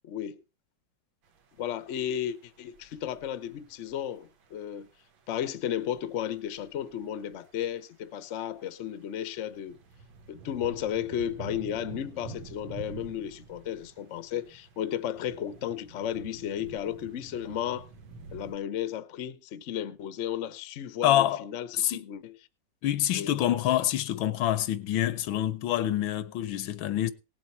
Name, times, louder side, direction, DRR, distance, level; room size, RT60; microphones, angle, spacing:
voice 1, 0.0-0.4 1.6-4.9 5.3-9.8 10.3-17.9 18.3-22.4 23.1-23.3, left 10 dB, 55° left, 0.8 m, -34 dB
sound 1, 1.2-18.5, right 4 dB, 85° right, 2.2 m, -48 dB
voice 2, 21.0-21.4 21.7-22.0 22.8-27.1, left 12 dB, 85° left, 1.6 m, -26 dB
17.5 x 7.7 x 4.3 m
omnidirectional pair, 2.1 m